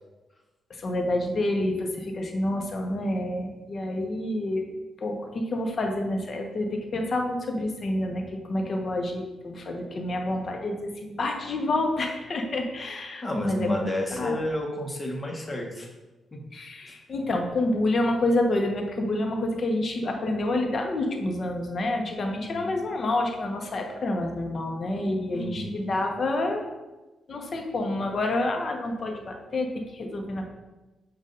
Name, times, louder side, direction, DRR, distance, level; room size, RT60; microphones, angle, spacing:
voice 1, 0.7-4.6 5.0-13.7 14.1-14.4 16.5-26.6 27.3-30.5, left 1 dB, 45° left, 2 dB, 1.0 m, -28 dB
voice 2, 13.2-15.9 16.3-16.4 16.9-17.0 22.4-22.8 25.3-25.8, left 1 dB, 25° left, 0 dB, 1.2 m, -31 dB
7.7 x 2.6 x 5.2 m, 1.1 s
cardioid pair, 110°, 0 cm